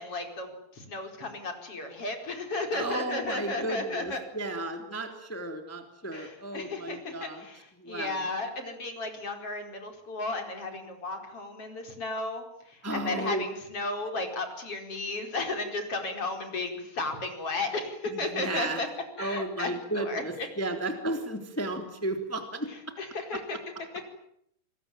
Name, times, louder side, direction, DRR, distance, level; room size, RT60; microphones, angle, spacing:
voice 1, 0.0-4.2 6.1-18.9 19.2-19.7 20.0-20.5 23.0-23.6, left 2 dB, 35° left, 5 dB, 5.5 m, -34 dB
voice 2, 2.7-7.4 7.8-8.2 12.8-13.4 18.1-18.8 19.2-22.7, right 2 dB, 5° left, 6 dB, 2.8 m, -34 dB
27.5 x 22.0 x 9.2 m, 0.73 s
omnidirectional pair, 4.5 m